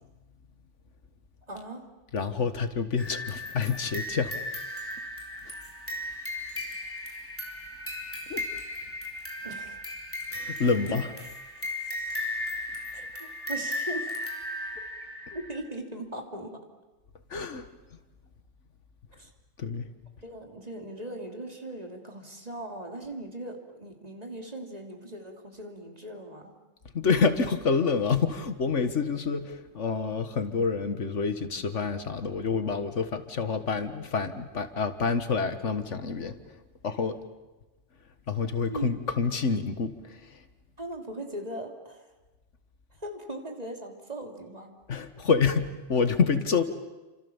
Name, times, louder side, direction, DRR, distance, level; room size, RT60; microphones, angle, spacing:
voice 1, 1.5-1.8 6.6-6.7 9.4-9.8 11.5-12.2 12.9-14.2 15.3-16.6 19.2-19.3 20.2-26.6 38.7-39.0 40.8-42.1 42.9-44.7, right 1 dB, 35° right, 2 dB, 3.2 m, -39 dB
voice 2, 2.1-4.3 8.3-8.5 10.4-11.1 17.3-17.7 19.6-19.9 26.9-36.4 36.8-37.2 38.3-40.4 44.9-46.6, left 5 dB, 90° left, 10 dB, 1.9 m, -27 dB
sound 1, 3.0-15.6, left 1 dB, 10° left, 3.6 m, -36 dB
29.0 x 26.5 x 7.2 m, 1.1 s
omnidirectional pair, 1.2 m